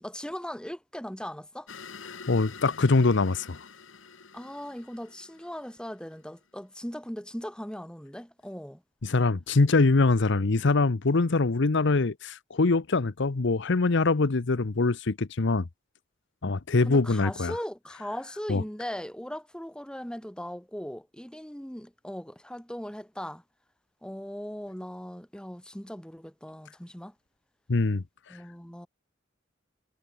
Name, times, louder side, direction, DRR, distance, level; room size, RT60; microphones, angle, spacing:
voice 1, 0.0-1.7 4.3-8.8 16.8-23.4 24.0-27.1 28.3-28.9, equal, 5° left, 1.6 m, -39 dB
sound 1, 1.7-6.3, left 5 dB, 80° left, 2.0 m, -47 dB
voice 2, 2.3-3.6 9.0-15.7 16.4-17.5 18.5-18.6 27.7-28.0, left 3 dB, 65° left, 0.8 m, -23 dB
head